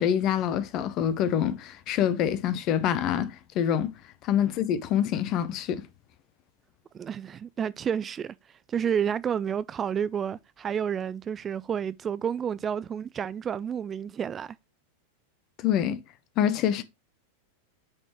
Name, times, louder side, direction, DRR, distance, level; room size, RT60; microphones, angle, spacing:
voice 1, 0.0-3.9 4.2-5.9 15.6-16.0 16.4-16.8, left 9 dB, 35° left, 0.8 m, -26 dB
voice 2, 6.9-14.6, right 8 dB, 25° right, 0.3 m, -30 dB
8.6 x 4.2 x 3.1 m
figure-of-eight pair, 90°, 0 cm